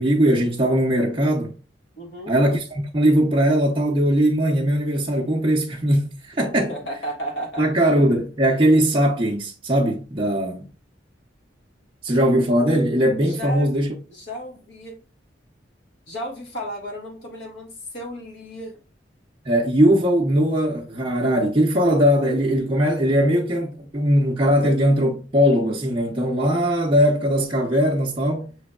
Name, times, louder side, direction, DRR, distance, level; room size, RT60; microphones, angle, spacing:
voice 1, 0.0-1.5 2.3-6.7 7.6-10.7 12.0-13.9 19.4-28.5, equal, 30° right, 0.6 m, -20 dB
voice 2, 2.0-2.4 6.5-7.9 13.2-13.7 14.1-15.0 16.1-18.8, equal, 70° left, 1.6 m, -34 dB
5.9 x 3.3 x 2.3 m
head